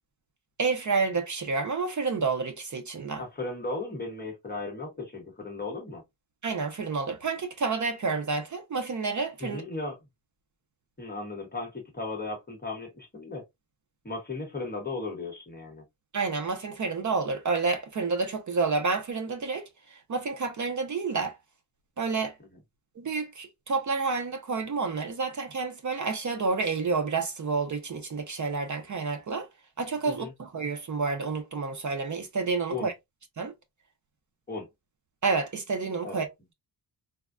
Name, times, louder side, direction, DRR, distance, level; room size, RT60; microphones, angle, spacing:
voice 1, 0.6-3.2 6.4-9.6 16.1-21.4 22.0-22.3 23.0-29.5 29.8-32.9 33.4-33.5 35.2-36.3, right 4 dB, 40° right, 0.5 m, -29 dB
voice 2, 3.2-6.0 9.4-10.0 11.0-13.4 14.0-15.8 30.0-30.3 32.7-32.9 34.5-34.7 36.0-36.2, left 3 dB, 20° left, 0.8 m, -36 dB
3.4 x 2.1 x 2.3 m
wide cardioid pair, 165°, 46 cm